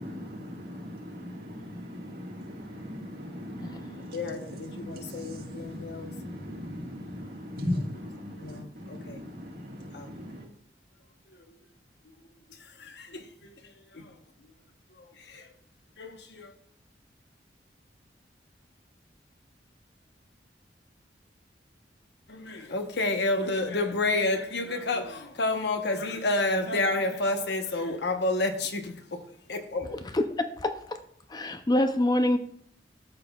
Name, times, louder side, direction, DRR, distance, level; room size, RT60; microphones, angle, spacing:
voice 1, 0.0-10.5, left 1 dB, 60° right, 1.6 m, -38 dB
voice 2, 4.0-6.1 8.4-9.2 9.9-10.1 11.3-11.6 12.0-12.2 12.5-14.5 14.9-15.5 16.0-16.5 22.3-30.1, left 2 dB, 80° left, 0.9 m, -31 dB
voice 3, 30.1-31.0 31.3-32.4, left 1 dB, 25° left, 0.4 m, -25 dB
13.5 x 6.0 x 2.3 m
head